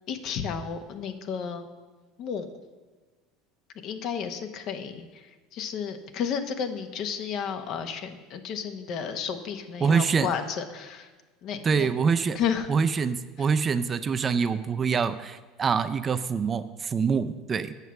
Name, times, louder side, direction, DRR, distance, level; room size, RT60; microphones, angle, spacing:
voice 1, 0.1-1.7 2.2-2.5 3.8-5.1 5.5-11.1 11.4-11.9 12.3-12.7 13.4-13.5, left 7 dB, 55° left, 7 dB, 1.0 m, -32 dB
voice 2, 9.8-10.3 11.6-12.4 12.7-17.7, right 5 dB, 30° right, 11 dB, 0.5 m, -25 dB
8.1 x 6.2 x 7.0 m, 1.3 s
hypercardioid pair, 80°, 0 cm